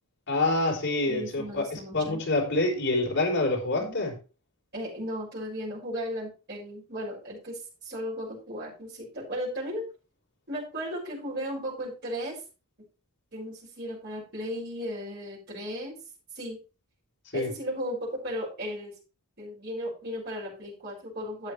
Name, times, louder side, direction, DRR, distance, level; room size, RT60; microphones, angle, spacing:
voice 1, 0.3-4.1 17.3-17.5, left 2 dB, 55° left, 4.3 m, -26 dB
voice 2, 1.1-2.2 3.7-4.0 4.7-9.8 10.5-12.4 13.3-15.9 16.3-16.6 17.3-18.9 19.4-21.5, equal, 50° right, 6.2 m, -35 dB
12.0 x 8.4 x 3.3 m
head